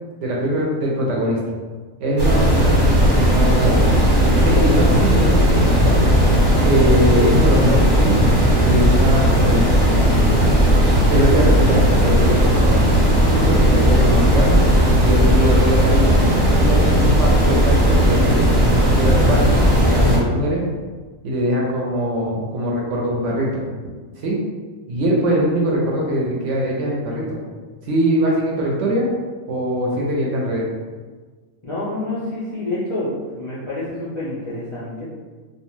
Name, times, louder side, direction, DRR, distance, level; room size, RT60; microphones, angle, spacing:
voice 1, 0.2-1.4 2.0-6.0 6.6-8.2 8.6-10.0 11.1-12.8 13.3-14.6 15.0-16.2 16.6-18.5 19.0-20.7 21.2-23.6 24.2-24.4 24.9-27.4 27.8-29.1 29.5-30.7, equal, 70° right, -3 dB, 0.8 m, -22 dB
sound 1, 2.2-20.2, equal, 25° right, 0.6 m, -15 dB
voice 2, 31.6-35.0, left 2 dB, 50° left, -10 dB, 0.3 m, -28 dB
2.4 x 2.2 x 3.0 m, 1.4 s
omnidirectional pair, 1.4 m